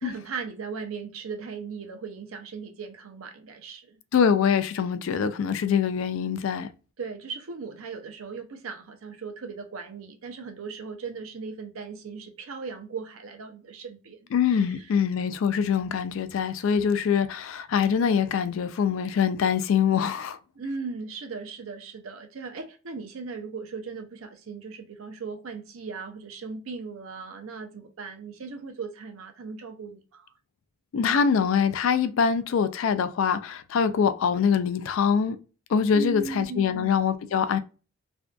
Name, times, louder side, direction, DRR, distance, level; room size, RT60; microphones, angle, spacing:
voice 1, 0.0-4.0 7.0-14.2 14.5-14.9 20.6-30.3 35.9-36.9, right 4 dB, 70° right, 0.5 m, -38 dB
voice 2, 4.1-6.7 14.3-20.4 30.9-35.4 35.7-37.6, left 7 dB, 70° left, 0.3 m, -24 dB
2.5 x 2.2 x 2.2 m
head